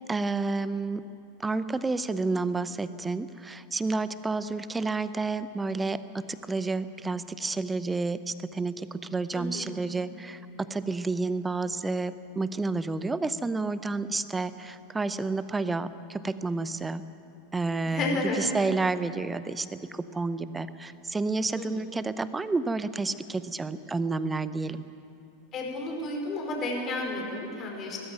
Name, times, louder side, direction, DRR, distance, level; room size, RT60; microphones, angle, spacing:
voice 1, 0.1-1.0 1.4-17.0 17.5-24.8, right 3 dB, 15° right, 14 dB, 0.7 m, -30 dB
voice 2, 9.3-9.8 17.8-18.5 21.6-21.8 25.5-28.0, left 2 dB, 35° left, 0 dB, 5.2 m, -32 dB
19.0 x 15.0 x 9.2 m, 2.6 s
figure-of-eight pair, 85°, 0 cm